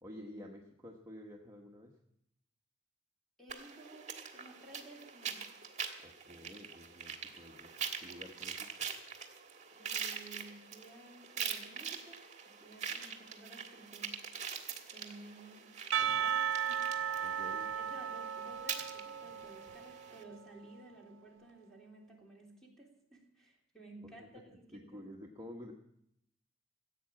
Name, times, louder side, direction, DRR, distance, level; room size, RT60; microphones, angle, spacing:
voice 1, 0.0-1.9 6.0-7.7 8.0-8.7 17.2-17.7 24.0-24.3 24.7-25.7, left 1 dB, 20° right, -1 dB, 1.1 m, -50 dB
voice 2, 3.4-5.5 9.7-12.2 12.5-14.2 14.9-15.7 16.0-17.2 17.8-25.1, right 2 dB, ahead, -2 dB, 3.2 m, -55 dB
sound 1, 3.5-20.2, right 7 dB, 35° right, 1.6 m, -44 dB
Percussion / Church bell, 15.9-20.5, right 8 dB, 80° right, 0.4 m, -36 dB
15.5 x 8.5 x 7.3 m, 0.78 s
head